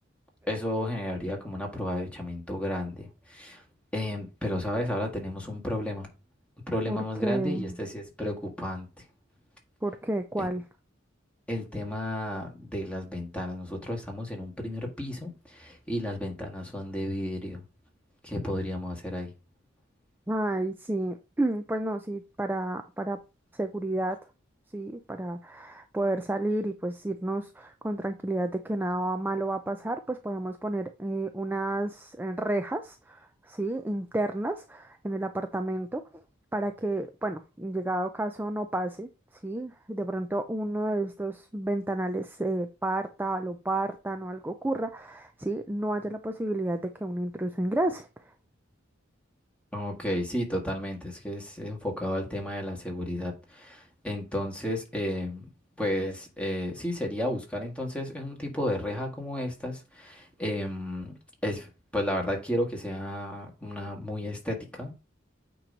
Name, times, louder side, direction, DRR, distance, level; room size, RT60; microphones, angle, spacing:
voice 1, 0.5-3.6 3.9-6.1 6.7-8.9 10.4-10.5 11.5-17.6 18.2-19.3 49.7-55.5 55.8-61.1 61.4-64.9, left 1 dB, 5° left, 1.8 m, -32 dB
voice 2, 6.9-7.7 9.8-10.6 20.3-23.2 23.5-24.2 24.7-36.2 36.5-39.1 39.4-48.1, right 1 dB, 10° right, 0.5 m, -31 dB
8.9 x 3.1 x 5.1 m
head